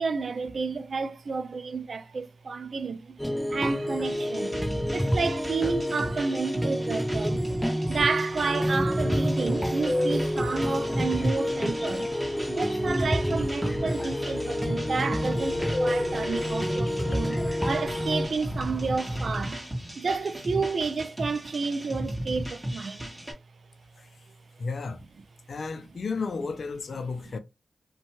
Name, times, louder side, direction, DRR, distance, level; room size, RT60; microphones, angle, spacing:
voice 1, 0.0-3.2 3.5-7.4 7.9-12.1 12.5-19.6 20.0-23.1, right 4 dB, 65° right, 0.3 m, -30 dB
sound 1, 3.2-18.3, equal, ahead, 0.5 m, -29 dB
sound 2, 4.0-23.3, right 1 dB, 15° right, 1.3 m, -36 dB
sound 3, 8.3-19.4, left 1 dB, 25° left, 0.8 m, -36 dB
voice 2, 24.6-25.0 25.5-27.4, left 4 dB, 70° left, 0.4 m, -33 dB
2.6 x 2.2 x 2.8 m
cardioid pair, 45°, 0 cm